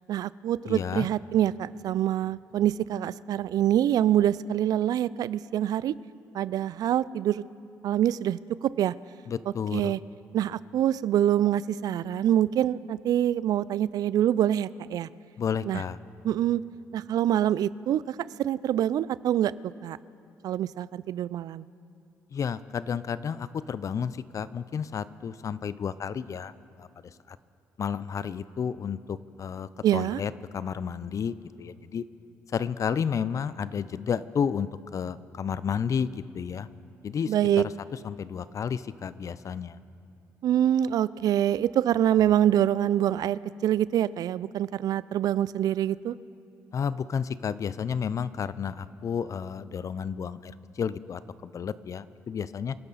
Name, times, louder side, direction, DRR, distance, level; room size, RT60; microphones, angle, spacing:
voice 1, 0.1-5.9 6.3-7.4 7.8-8.9 9.7-10.0 10.3-15.1 15.7-15.8 16.2-16.6 16.9-19.6 19.8-20.0 20.4-21.6 29.8-30.2 37.3-37.6 40.4-46.1, right 11 dB, 65° right, 19 dB, 0.4 m, -25 dB
voice 2, 0.7-1.1 9.3-9.9 15.4-16.0 22.3-26.5 26.8-26.9 27.3-27.4 27.8-32.0 32.5-36.7 37.0-37.6 38.0-39.8 46.7-52.8, left 7 dB, 50° left, 16 dB, 0.6 m, -31 dB
27.0 x 12.0 x 4.1 m, 2.7 s
hypercardioid pair, 55°, 7 cm